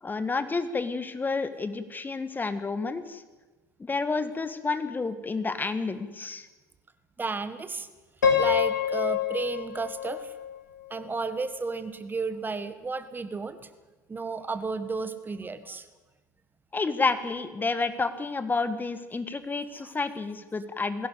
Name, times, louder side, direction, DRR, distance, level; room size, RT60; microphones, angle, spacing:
voice 1, 0.0-3.2 3.8-6.5 16.7-21.1, left 4 dB, 20° left, 11 dB, 1.8 m, -30 dB
voice 2, 7.2-7.9 8.4-10.3 10.9-13.6 14.1-15.8 19.8-19.9, right 4 dB, 20° right, 11 dB, 1.7 m, -33 dB
Piano, 8.2-11.2, left 8 dB, 85° left, 2.5 m, -27 dB
21.0 x 17.0 x 8.3 m, 1.2 s
hypercardioid pair, 70°, 10 cm